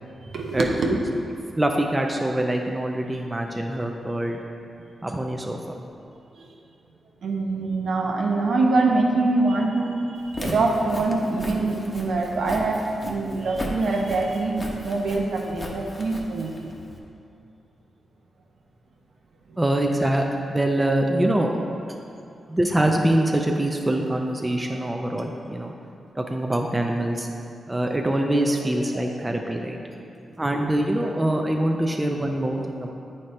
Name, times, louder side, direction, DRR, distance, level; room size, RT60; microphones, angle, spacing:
voice 1, 0.3-0.9 6.4-6.5 7.2-16.6 28.9-29.0, right 3 dB, 70° right, 0 dB, 0.8 m, -24 dB
voice 2, 1.6-4.4 5.0-5.6 19.6-21.5 22.5-25.7 26.2-27.3 27.7-29.8 30.4-32.9, right 1 dB, 15° right, 2 dB, 0.4 m, -24 dB
Walk footsteps, 10.2-17.0, left 1 dB, 30° left, 0.8 m, -36 dB
9.2 x 4.2 x 3.2 m, 2.5 s
cardioid pair, 105°, 0 cm